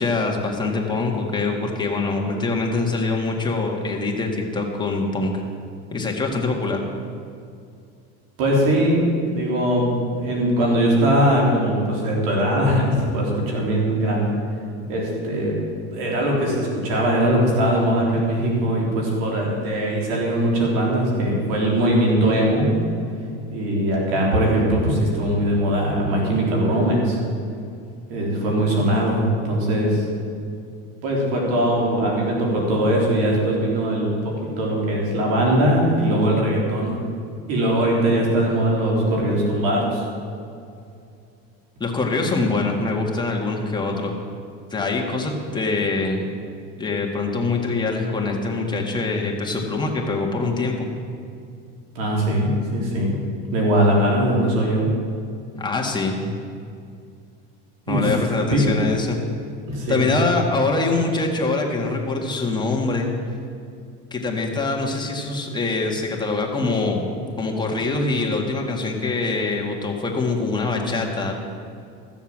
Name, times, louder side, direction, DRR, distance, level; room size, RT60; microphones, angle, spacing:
voice 1, 0.0-5.3 5.9-6.8 41.8-44.1 44.7-46.3 46.8-50.9 55.6-56.2 57.9-59.2 59.9-63.1 64.1-71.3, left 3 dB, 15° left, 0 dB, 1.9 m, -24 dB
voice 2, 8.4-14.3 14.9-15.5 15.9-22.8 23.5-27.2 28.1-30.0 31.0-36.9 37.5-40.0 52.0-53.1 53.5-54.9 57.9-58.1 58.5-58.6 59.7-60.1, right 1 dB, 85° right, -2 dB, 3.6 m, -21 dB
14.5 x 7.2 x 7.4 m, 2.4 s
supercardioid pair, 120°, 29 cm